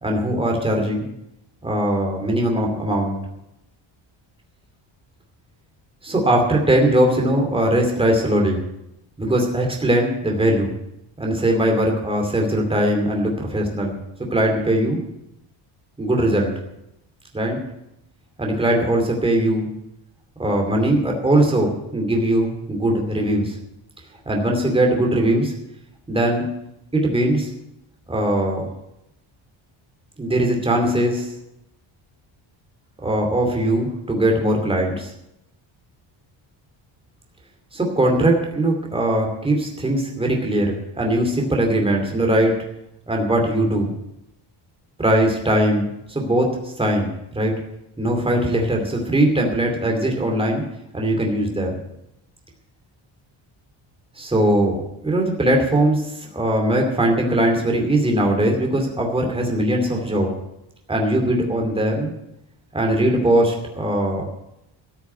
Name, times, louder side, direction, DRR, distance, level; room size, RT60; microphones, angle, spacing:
voice 1, 0.0-1.1 1.6-3.2 6.0-8.6 9.2-10.7 11.2-14.0 14.3-15.0 16.0-16.5 17.3-17.6 18.4-19.7 20.4-23.6 24.3-25.5 26.1-26.5 26.9-27.5 28.1-28.7 30.2-31.3 33.0-35.1 37.7-42.5 43.1-43.9 45.0-47.5 48.0-50.6 50.9-51.8 54.2-60.3 60.9-62.1 62.7-64.3, right 1 dB, 10° right, 1 dB, 2.6 m, -20 dB
14.0 x 7.0 x 9.1 m, 0.84 s
cardioid pair, 165°, 49 cm